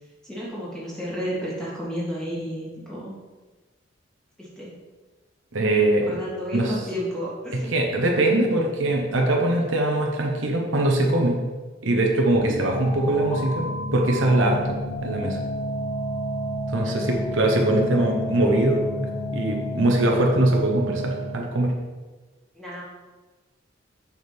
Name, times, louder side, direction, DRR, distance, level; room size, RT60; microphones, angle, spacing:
voice 1, 0.2-3.1 4.4-4.8 6.1-7.7 16.8-17.2 22.5-22.8, equal, 5° left, -8 dB, 2.4 m, -32 dB
voice 2, 5.5-6.2 6.5-6.7 7.7-11.4 11.8-13.7 13.9-14.6 15.0-15.4 16.7-21.7, right 1 dB, 70° right, 0 dB, 1.0 m, -22 dB
sound 1, 12.3-21.6, equal, 45° left, 1.6 m, -30 dB
6.7 x 6.4 x 3.5 m, 1.3 s
head